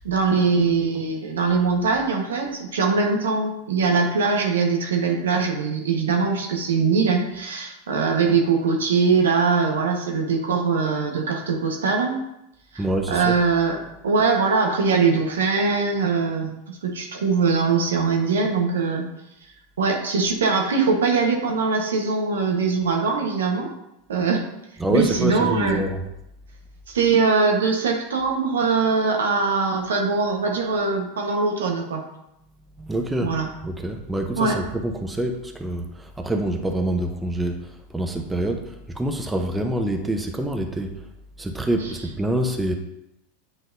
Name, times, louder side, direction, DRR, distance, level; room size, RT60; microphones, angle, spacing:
voice 1, 0.0-12.2 12.7-12.8 13.1-13.8 14.0-19.1 19.8-23.7 24.1-24.4 24.9-25.8 26.9-32.0 33.2-33.5 34.4-34.6 41.8-41.9, right 4 dB, 85° right, 2 dB, 1.1 m, -22 dB
voice 2, 12.8-13.4 24.8-26.1 32.8-33.3 33.6-40.9 41.4-42.7, right 1 dB, 10° right, 4 dB, 0.7 m, -26 dB
9.0 x 4.0 x 2.6 m, 0.86 s
hypercardioid pair, 95°, 0 cm